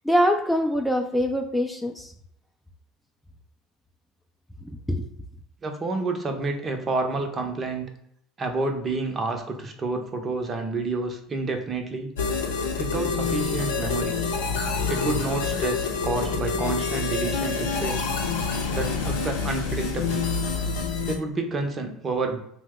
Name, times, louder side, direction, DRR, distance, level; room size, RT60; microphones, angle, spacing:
voice 1, 0.0-2.1 4.9-5.1, equal, 5° left, 3 dB, 0.4 m, -23 dB
voice 2, 5.6-7.9 8.4-12.1 12.8-14.1 14.9-18.0 18.7-20.3 21.0-22.4, right 3 dB, 35° right, 5 dB, 0.6 m, -29 dB
sound 1, 12.2-21.2, left 4 dB, 80° left, 0.5 m, -27 dB
2.7 x 2.1 x 3.5 m, 0.74 s
hypercardioid pair, 65°, 0 cm